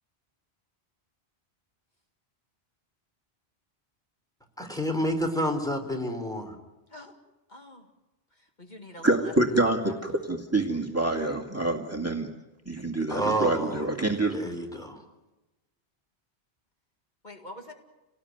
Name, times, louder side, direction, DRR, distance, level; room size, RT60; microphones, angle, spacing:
voice 1, 4.6-6.5 13.1-13.8 14.3-15.0, equal, 5° left, 3 dB, 3.8 m, -29 dB
voice 2, 7.5-7.9 8.6-10.0 17.2-17.7, left 1 dB, 45° left, 3 dB, 2.3 m, -45 dB
voice 3, 9.0-12.3 12.7-14.4, right 2 dB, 15° right, 2 dB, 2.2 m, -26 dB
29.0 x 19.0 x 9.6 m, 1.0 s
omnidirectional pair, 1.1 m